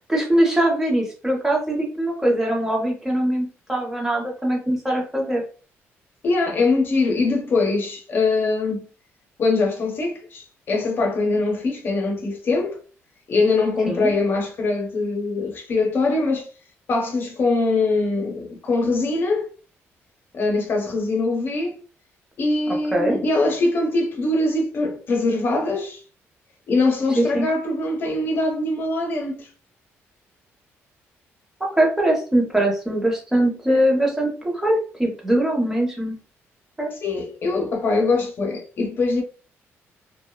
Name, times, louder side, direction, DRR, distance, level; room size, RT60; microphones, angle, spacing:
voice 1, 0.1-5.4 13.9-14.1 22.7-23.2 27.2-27.5 31.7-36.2 36.8-36.9, right 1 dB, 10° right, 0.8 m, -22 dB
voice 2, 6.2-8.8 9.4-12.8 13.3-16.5 16.9-19.5 20.3-21.8 22.4-26.0 26.7-29.5 37.0-39.2, left 3 dB, 45° left, 0.7 m, -22 dB
2.5 x 2.2 x 2.3 m
cardioid pair, 130°, 5 cm